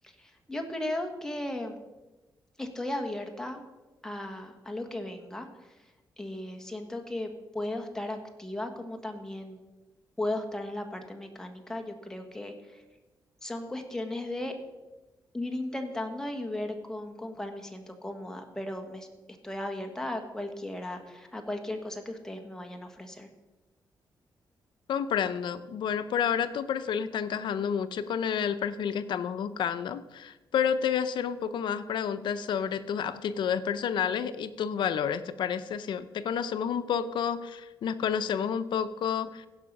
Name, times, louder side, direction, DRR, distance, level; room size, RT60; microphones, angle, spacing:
voice 1, 0.0-1.8 2.6-3.6 4.0-5.8 6.2-9.6 10.2-12.8 13.4-14.5 15.3-19.1 19.4-23.3, left 1 dB, 5° left, 4 dB, 1.3 m, -36 dB
voice 2, 24.9-39.5, left 8 dB, 75° left, 13 dB, 0.6 m, -30 dB
16.0 x 5.5 x 5.3 m, 1.1 s
wide cardioid pair, 140°, 8 cm